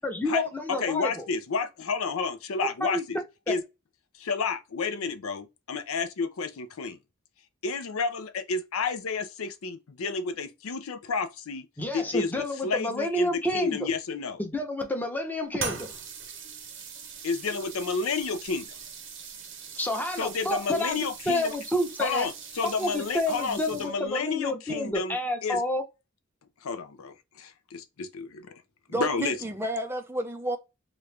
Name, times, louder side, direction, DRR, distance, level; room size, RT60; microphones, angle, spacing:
voice 1, 0.0-1.3 2.8-3.0 3.5-3.6 11.8-13.9 14.4-15.9 19.8-21.0 21.3-22.3 22.6-25.8, left 1 dB, 10° left, 0.7 m, -29 dB
voice 2, 0.7-3.2 3.5-3.6 4.2-7.0 7.6-11.7 11.9-14.4 17.2-18.7 20.2-21.5 22.0-25.2 25.4-25.6 26.6-28.6 28.9-29.4, left 4 dB, 80° left, 0.5 m, -31 dB
sound 1, 15.6-24.2, right 6 dB, 60° right, 0.8 m, -41 dB
voice 3, 28.9-30.6, right 1 dB, 10° right, 0.4 m, -31 dB
3.0 x 2.4 x 3.2 m
head